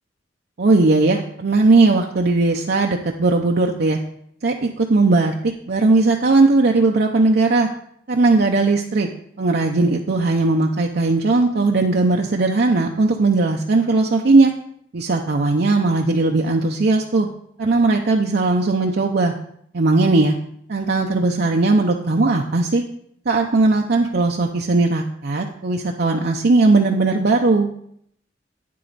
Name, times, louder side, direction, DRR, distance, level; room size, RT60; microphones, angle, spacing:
voice 1, 0.6-4.0 4.4-7.7 8.1-9.1 9.4-14.5 14.9-17.3 17.6-19.3 19.7-20.3 20.7-22.8 23.3-27.7, right 3 dB, 60° right, 1 dB, 0.6 m, -18 dB
9.3 x 7.6 x 4.0 m, 0.68 s
head